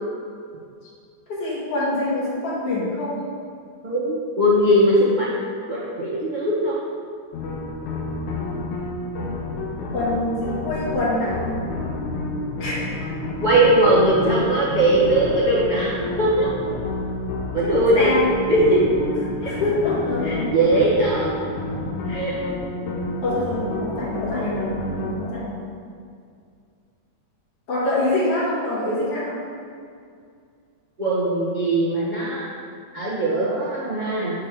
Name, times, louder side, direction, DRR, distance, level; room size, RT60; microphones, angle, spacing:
voice 1, 1.3-3.2 9.9-11.4 12.6-12.8 17.6-18.3 19.5-20.5 23.2-24.7 25.1-25.6 27.7-29.4, left 2 dB, 55° left, -6 dB, 2.8 m, -25 dB
voice 2, 3.8-5.4 5.7-6.8 13.4-16.5 17.5-18.1 18.5-18.8 19.4-19.5 20.2-21.3 22.1-22.3 31.0-32.5 32.9-34.3, right 1 dB, 65° right, -7 dB, 0.4 m, -20 dB
sound 1, 7.3-25.1, left 2 dB, 80° left, 2.3 m, -29 dB
6.9 x 6.7 x 4.9 m, 2.3 s
omnidirectional pair, 3.4 m